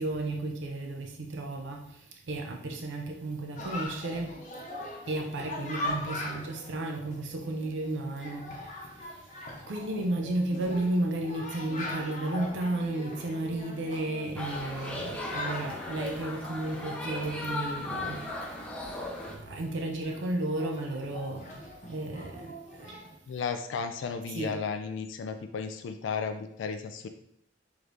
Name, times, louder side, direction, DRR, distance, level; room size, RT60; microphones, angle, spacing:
voice 1, 0.0-4.4 4.7-9.3 9.7-18.4 19.3-23.0 24.3-24.5, right 2 dB, 75° right, 3 dB, 0.5 m, -33 dB
Chatter, 3.6-23.2, left 1 dB, 40° left, 0.7 m, -42 dB
sound 1, 14.4-19.3, left 2 dB, 5° left, 0.5 m, -37 dB
voice 2, 23.3-27.1, left 5 dB, 85° left, 7 dB, 0.3 m, -34 dB
4.8 x 3.1 x 2.6 m, 0.73 s
head